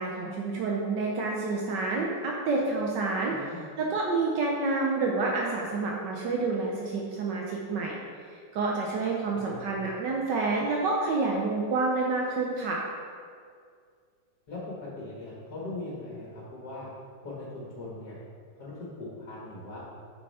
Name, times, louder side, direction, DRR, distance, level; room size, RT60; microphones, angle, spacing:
voice 1, 0.0-3.4 3.8-8.0 8.5-12.8, right 3 dB, 70° right, -2 dB, 1.3 m, -28 dB
voice 2, 3.3-3.6 9.3-9.5 14.5-14.6 15.0-16.9 17.2-18.2 18.6-19.8, left 2 dB, 60° left, -6 dB, 1.9 m, -40 dB
6.8 x 6.6 x 4.1 m, 2.2 s
omnidirectional pair, 2.0 m